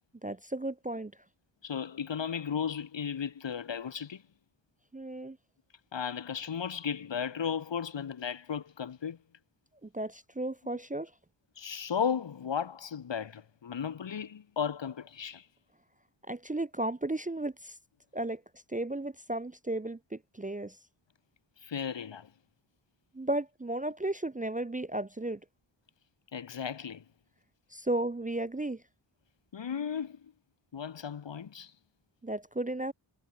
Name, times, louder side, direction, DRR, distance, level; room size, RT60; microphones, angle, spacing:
voice 1, 0.2-1.1 4.9-5.4 9.9-11.1 16.3-17.7 18.1-18.4 18.7-20.7 23.1-25.4 27.7-28.8 32.2-32.9, right 1 dB, 15° right, 0.5 m, -34 dB
voice 2, 1.6-4.2 5.9-9.2 11.6-15.5 21.6-22.3 26.3-27.0 29.5-30.3 30.7-31.7, left 7 dB, 60° left, 1.0 m, -35 dB
wide cardioid pair, 55°, 49 cm